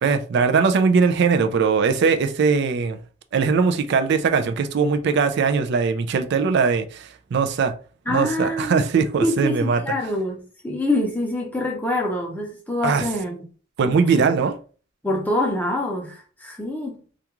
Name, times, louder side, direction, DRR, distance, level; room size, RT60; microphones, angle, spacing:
voice 1, 0.0-3.0 3.3-7.7 8.1-9.8 12.8-13.1 13.8-14.6, right 5 dB, 55° right, 0.3 m, -20 dB
voice 2, 8.1-8.8 9.2-13.3 13.8-14.0 15.0-17.0, left 1 dB, 10° left, 0.6 m, -25 dB
2.4 x 2.3 x 2.9 m
head